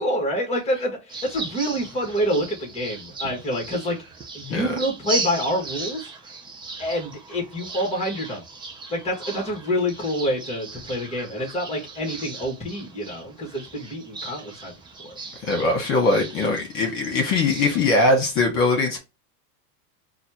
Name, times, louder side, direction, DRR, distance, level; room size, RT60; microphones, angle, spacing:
voice 1, 0.0-4.0 4.3-6.1 6.8-8.4 8.9-14.7 15.0-15.1, equal, 15° left, 1.6 m, -27 dB
sound 1, 1.1-18.3, right 3 dB, 10° right, 0.4 m, -37 dB
voice 2, 15.4-19.0, left 2 dB, 40° left, 1.5 m, -21 dB
4.1 x 2.4 x 2.9 m
supercardioid pair, 130°, 49 cm